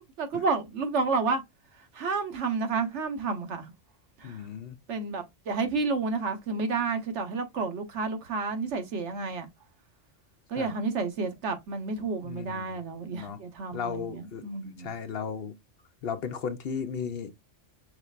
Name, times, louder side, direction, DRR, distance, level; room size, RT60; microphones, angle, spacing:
voice 1, 0.2-1.4 1.9-3.7 4.2-4.4 4.9-9.5 10.5-14.9, right 4 dB, 75° right, 1.2 m, -30 dB
voice 2, 4.2-4.8 10.6-10.7 12.2-12.8 13.1-13.4 13.7-14.4 14.8-15.5 16.0-17.5, left 6 dB, 60° left, 0.8 m, -35 dB
5.0 x 3.2 x 2.4 m
omnidirectional pair, 1.2 m